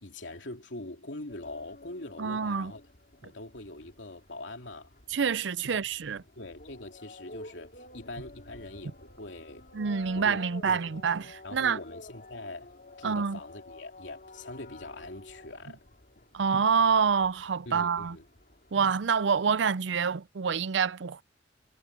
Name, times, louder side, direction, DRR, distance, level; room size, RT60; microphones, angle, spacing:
voice 1, 0.0-2.8 3.2-4.9 5.6-5.8 6.4-10.8 11.4-12.7 13.0-15.8 17.7-18.2, left 2 dB, 85° left, 2.8 m, -43 dB
sound 1, 1.3-19.7, left 2 dB, 50° left, 6.2 m, -51 dB
voice 2, 2.2-2.7 5.1-6.2 9.7-11.8 13.0-13.4 16.3-18.2 18.7-21.2, right 6 dB, 75° right, 0.5 m, -27 dB
head